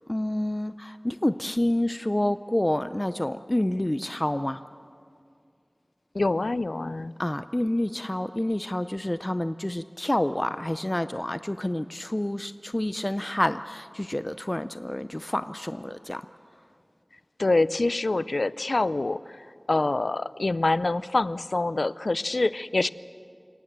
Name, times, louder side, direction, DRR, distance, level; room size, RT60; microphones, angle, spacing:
voice 1, 0.1-4.6 7.2-16.2, left 1 dB, 30° left, 12 dB, 0.5 m, -28 dB
voice 2, 6.1-7.1 17.4-22.9, left 2 dB, 80° left, 17 dB, 0.5 m, -26 dB
29.0 x 18.0 x 7.5 m, 2.4 s
wide cardioid pair, 40°, 0 cm